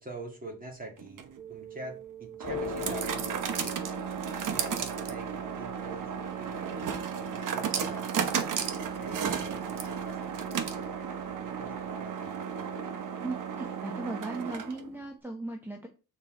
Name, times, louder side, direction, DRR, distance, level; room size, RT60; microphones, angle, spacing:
voice 1, 0.0-3.8 4.5-8.4 9.0-12.7, right 2 dB, 25° right, 2 dB, 2.4 m, -45 dB
sound 1, 1.0-15.0, right 7 dB, 60° right, 1.1 m, -34 dB
sound 2, 2.4-12.6, left 7 dB, 45° left, 1.2 m, -46 dB
voice 2, 13.2-15.9, right 2 dB, 5° right, 1 dB, 1.0 m, -37 dB
7.0 x 5.5 x 3.9 m, 0.32 s
cardioid pair, 130°, 36 cm